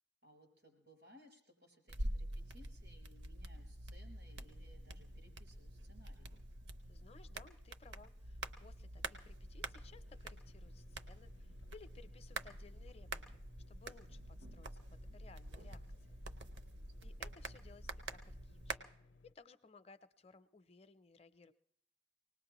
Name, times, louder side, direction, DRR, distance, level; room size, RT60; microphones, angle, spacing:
voice 1, 0.2-6.3 16.4-17.1, equal, 90° right, 1 dB, 4.1 m, -64 dB
sound 1, 1.9-18.8, right 2 dB, 65° right, 0.7 m, -47 dB
voice 2, 6.9-16.2 17.0-21.5, left 4 dB, 35° left, 11 dB, 0.5 m, -61 dB
sound 2, 9.8-19.3, left 2 dB, 80° left, 0.5 m, -65 dB
24.5 x 19.0 x 3.0 m, 0.69 s
head